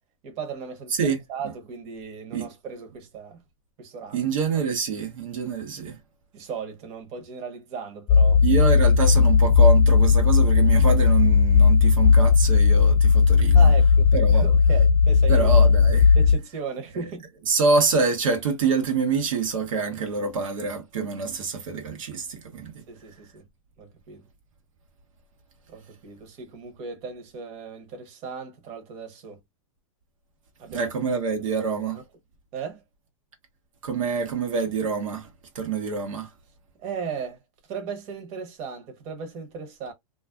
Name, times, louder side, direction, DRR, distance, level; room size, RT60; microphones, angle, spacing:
voice 1, 0.2-3.4 3.8-4.3 6.3-8.4 13.5-15.5 16.1-17.3 22.9-23.4 23.8-24.3 25.7-29.4 30.6-30.9 31.3-31.4 31.9-32.0 32.5-32.8 36.8-37.4 37.7-39.9, right 6 dB, 40° right, 1.0 m, -36 dB
voice 2, 4.1-6.0 8.4-13.7 14.1-14.5 15.3-16.2 17.5-22.8 30.7-32.0 33.8-35.3 35.5-36.3, right 5 dB, 75° right, 0.9 m, -26 dB
sound 1, 8.1-16.4, left 5 dB, 30° left, 0.5 m, -16 dB
2.4 x 2.3 x 2.3 m
hypercardioid pair, 120°, 17 cm